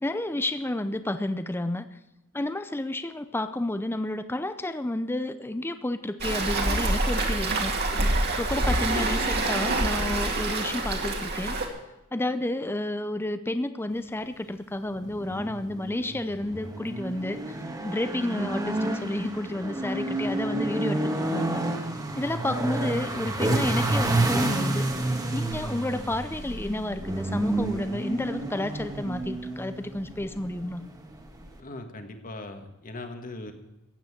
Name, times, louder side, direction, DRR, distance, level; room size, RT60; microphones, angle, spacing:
voice 1, 0.0-2.0 2.3-7.9 8.4-11.6 12.1-17.6 17.8-21.6 22.2-24.8 25.3-30.8, left 1 dB, 10° left, 10 dB, 0.5 m, -31 dB
Waves surf, 6.2-11.7, right 2 dB, 50° right, 2.4 m, -26 dB
sound 1, 15.0-31.6, right 2 dB, 15° right, 1.5 m, -30 dB
voice 2, 31.6-33.5, left 2 dB, 40° left, 6 dB, 1.7 m, -39 dB
15.0 x 8.9 x 7.4 m, 0.94 s
head